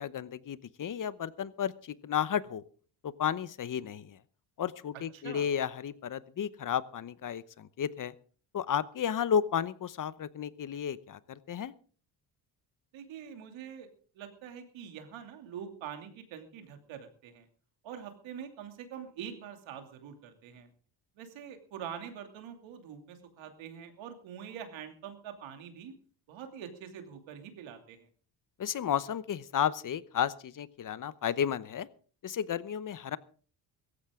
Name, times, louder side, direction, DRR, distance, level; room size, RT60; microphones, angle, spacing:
voice 1, 0.0-2.6 3.0-4.2 4.6-8.1 8.5-11.7 28.6-31.9 32.2-33.2, left 8 dB, 45° left, 17 dB, 0.9 m, -33 dB
voice 2, 5.1-5.5 12.9-13.9 14.1-17.5 17.8-20.7 21.2-25.9 26.3-28.1, right 8 dB, 80° right, 6 dB, 2.8 m, -45 dB
17.0 x 14.5 x 3.7 m, 0.42 s
cardioid pair, 85°, 46 cm